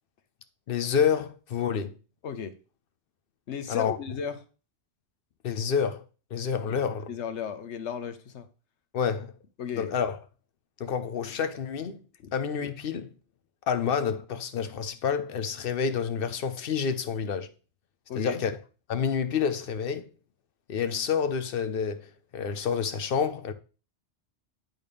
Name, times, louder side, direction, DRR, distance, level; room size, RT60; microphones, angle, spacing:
voice 1, 0.7-1.9 3.7-4.0 5.4-6.0 6.3-7.1 8.9-9.3 9.7-10.2 10.8-12.0 12.3-13.1 13.7-17.5 18.2-18.5 18.9-20.1 20.7-23.5, left 7 dB, 60° left, 0.8 m, -28 dB
voice 2, 2.2-2.5 3.5-4.4 6.6-6.7 7.1-8.5 9.6-9.9 12.2-12.3 18.1-18.4, left 7 dB, 75° left, 1.1 m, -35 dB
10.0 x 4.1 x 3.5 m
omnidirectional pair, 1.2 m